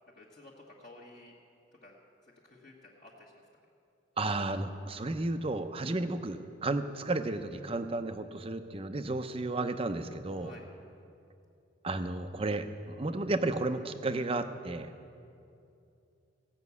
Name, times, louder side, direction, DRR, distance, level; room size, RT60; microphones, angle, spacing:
voice 1, 0.2-1.3 1.8-2.0 2.4-3.3 10.4-10.7, left 2 dB, 45° left, -6 dB, 1.4 m, -52 dB
voice 2, 4.2-10.5 11.8-14.9, right 2 dB, 30° right, 9 dB, 0.6 m, -33 dB
17.0 x 6.0 x 8.3 m, 2.6 s
head